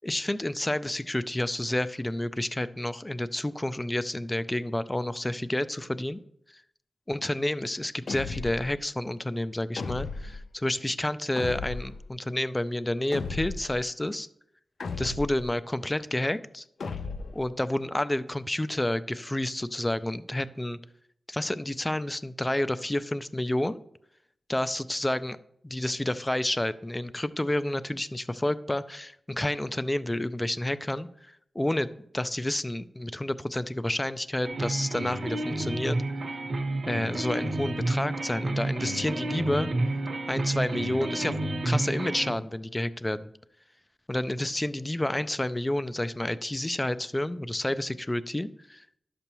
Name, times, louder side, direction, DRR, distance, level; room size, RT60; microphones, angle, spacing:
voice 1, 0.0-6.2 7.1-14.3 15.0-16.6 17.3-20.8 21.3-23.8 24.5-25.4 25.6-31.9 32.1-36.0 36.9-39.7 40.3-43.3 44.1-48.8, left 1 dB, 15° left, 14 dB, 0.3 m, -30 dB
sound 1, 8.1-8.7 9.8-10.4 11.4-12.0 13.1-13.8 14.8-15.5 16.8-17.4, left 4 dB, 75° left, 0.4 m, -35 dB
sound 2, 34.4-42.3, right 2 dB, 60° right, 1.0 m, -30 dB
11.0 x 6.8 x 3.0 m, 0.72 s
wide cardioid pair, 145°, 0 cm